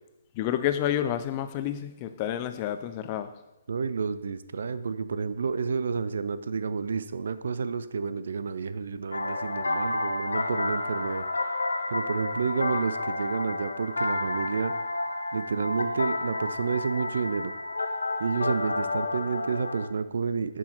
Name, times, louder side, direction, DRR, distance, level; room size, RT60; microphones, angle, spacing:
voice 1, 0.4-3.3, left 11 dB, 30° left, 10 dB, 0.4 m, -29 dB
voice 2, 3.7-11.2 11.9-14.7 15.3-17.5 18.2-20.6, right 5 dB, 70° right, 13 dB, 0.4 m, -30 dB
sound 1, 9.1-19.9, left 2 dB, 90° left, 0.4 m, -31 dB
6.1 x 3.8 x 4.3 m, 0.95 s
hypercardioid pair, 145°, 0 cm